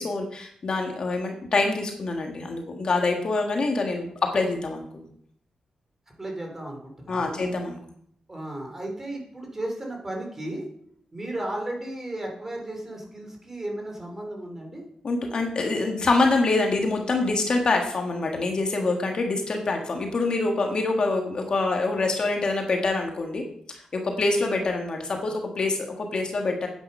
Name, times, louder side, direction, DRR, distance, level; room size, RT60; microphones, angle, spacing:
voice 1, 0.0-5.0 7.1-7.8 15.0-23.4 23.7-26.7, left 3 dB, 45° left, 2 dB, 1.7 m, -25 dB
voice 2, 6.2-7.4 8.3-10.6 11.1-14.8, right 1 dB, 20° right, 1 dB, 3.3 m, -34 dB
9.7 x 9.1 x 5.5 m, 0.66 s
wide cardioid pair, 140°, 2 cm